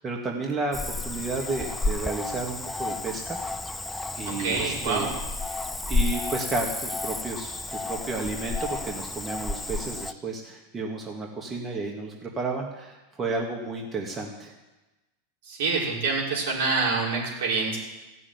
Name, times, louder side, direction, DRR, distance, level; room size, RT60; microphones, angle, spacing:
voice 1, 0.0-3.4 4.2-5.1 5.9-14.5, right 3 dB, 20° right, 0 dB, 1.9 m, -32 dB
Cricket / Frog, 0.7-10.1, left 3 dB, 5° left, 0.5 m, -31 dB
voice 2, 4.4-5.1 15.4-17.8, right 4 dB, 70° right, -3 dB, 4.8 m, -26 dB
15.0 x 6.3 x 9.4 m, 1.1 s
supercardioid pair, 120°, 0 cm